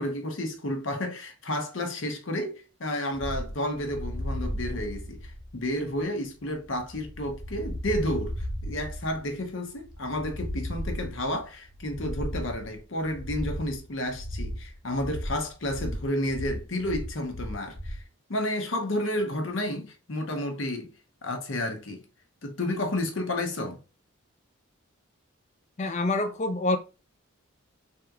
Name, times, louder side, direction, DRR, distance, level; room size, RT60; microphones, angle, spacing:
voice 1, 0.0-18.0 18.3-20.9 21.2-22.0 22.4-23.8, left 1 dB, 65° left, 0.9 m, -31 dB
sound 1, 3.1-18.1, equal, 80° left, 1.3 m, -36 dB
voice 2, 25.8-26.8, left 2 dB, 35° left, 0.5 m, -26 dB
3.4 x 2.9 x 2.3 m
head